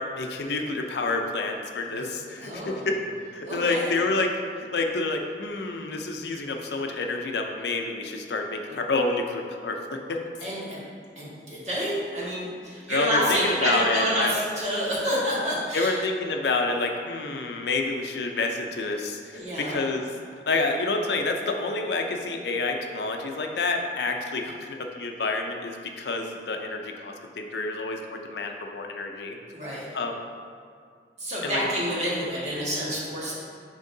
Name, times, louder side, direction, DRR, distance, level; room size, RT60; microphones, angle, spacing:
voice 1, 0.0-3.0 3.3-9.8 10.1-10.2 12.9-14.4 15.7-20.1 20.5-29.4 29.9-30.2 31.4-31.6, left 3 dB, 70° left, 3 dB, 0.5 m, -28 dB
voice 2, 2.4-2.9 3.5-3.9 10.4-10.8 11.1-16.0 19.3-19.8 29.5-29.9 31.2-33.3, equal, 40° right, -7 dB, 1.5 m, -28 dB
10.0 x 3.6 x 2.7 m, 2.2 s
head